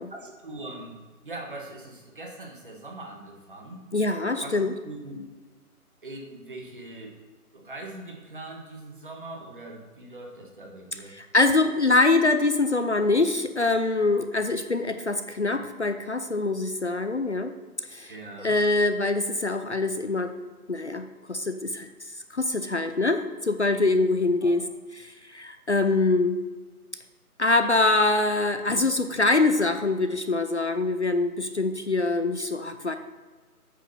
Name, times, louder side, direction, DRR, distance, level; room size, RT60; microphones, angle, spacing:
voice 1, 0.1-3.8 4.4-4.6 4.8-5.2 6.0-7.2 7.5-11.2 18.1-18.6 24.4-24.5, right 2 dB, 35° right, 1 dB, 1.4 m, -41 dB
voice 2, 3.9-4.7 11.1-17.5 17.9-18.1 18.4-20.3 20.7-21.9 22.3-24.6 25.0-26.4 27.4-33.0, left 3 dB, 50° left, 7 dB, 0.5 m, -24 dB
8.5 x 5.5 x 5.5 m, 1.3 s
figure-of-eight pair, 175°, 46 cm